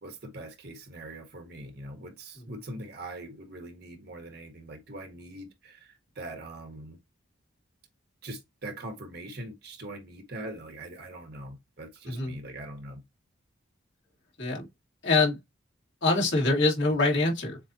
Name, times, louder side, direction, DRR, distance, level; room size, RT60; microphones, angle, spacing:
voice 1, 0.0-7.0 8.2-13.0, right 1 dB, 55° right, 1.4 m, -42 dB
voice 2, 12.1-12.4 14.4-14.7 15.0-15.4 16.0-17.6, left 3 dB, 65° left, 2.2 m, -24 dB
7.2 x 2.5 x 2.8 m
head